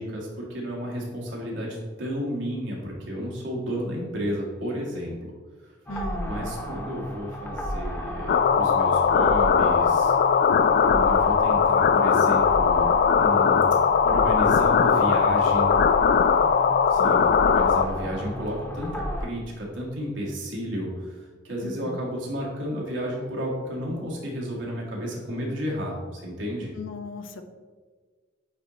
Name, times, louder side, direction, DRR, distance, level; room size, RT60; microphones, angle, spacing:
voice 1, 0.0-5.3 6.3-10.1 10.9-13.7 14.0-15.7 16.9-26.7, equal, 75° right, -3 dB, 1.7 m, -32 dB
voice 2, 5.9-6.5 17.0-17.4 21.6-22.0 26.7-27.4, left 2 dB, 85° left, 7 dB, 0.6 m, -37 dB
sound 1, 5.9-19.3, equal, 10° left, 0.6 m, -33 dB
sound 2, 8.3-17.9, left 6 dB, 55° left, 0.3 m, -20 dB
8.3 x 3.1 x 4.0 m, 1.5 s
head